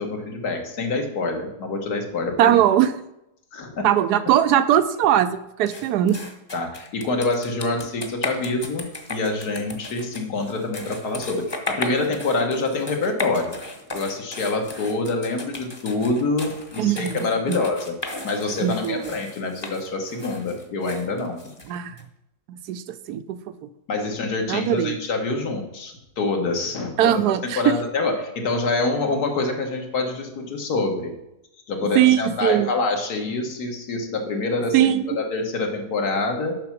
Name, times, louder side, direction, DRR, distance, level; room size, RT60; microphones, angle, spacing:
voice 1, 0.0-2.6 3.5-3.9 6.5-13.6 13.9-17.9 18.2-21.4 23.9-27.2 27.6-31.1 31.7-36.6, left 3 dB, 80° left, 3 dB, 1.8 m, -26 dB
voice 2, 2.4-2.9 3.8-6.2 16.8-17.6 18.6-19.1 21.7-22.0 22.5-23.4 24.5-25.0 27.0-27.8 31.8-32.7 34.7-35.1, right 11 dB, 85° right, 12 dB, 1.1 m, -20 dB
sound 1, 5.7-22.0, left 2 dB, 20° left, 0.8 m, -36 dB
7.7 x 5.9 x 5.8 m, 0.86 s
omnidirectional pair, 1.7 m